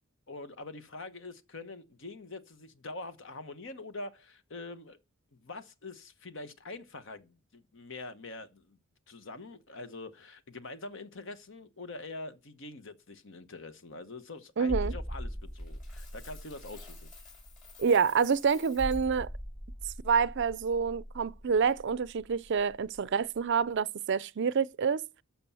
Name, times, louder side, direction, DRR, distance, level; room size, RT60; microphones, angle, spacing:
voice 1, 0.3-5.0 5.3-8.8 9.1-17.1, left 2 dB, 60° left, 1.1 m, -44 dB
voice 2, 14.6-14.9 17.8-19.3 20.0-25.0, right 6 dB, 55° right, 0.4 m, -27 dB
sound 1, 14.7-23.1 23.3-23.5, equal, 20° left, 2.0 m, -41 dB
Coin (dropping), 15.6-19.1, left 5 dB, 35° left, 5.7 m, -54 dB
13.0 x 5.9 x 5.6 m
head